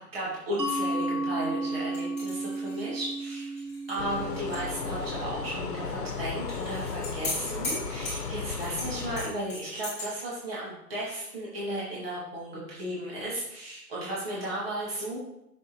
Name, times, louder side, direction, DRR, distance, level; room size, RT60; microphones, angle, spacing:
voice 1, 0.1-3.5 3.9-15.2, right 1 dB, 35° right, -7 dB, 2.2 m, -35 dB
Mallet percussion, 0.6-6.0, right 2 dB, 80° right, 1.9 m, -33 dB
sound 1, 1.9-4.7 5.0-5.1 6.5-10.1, left 2 dB, 15° left, 2.5 m, -38 dB
sound 2, 4.0-9.3, left 5 dB, 70° left, 1.0 m, -35 dB
6.5 x 6.4 x 3.1 m, 0.84 s
hypercardioid pair, 165°, 48 cm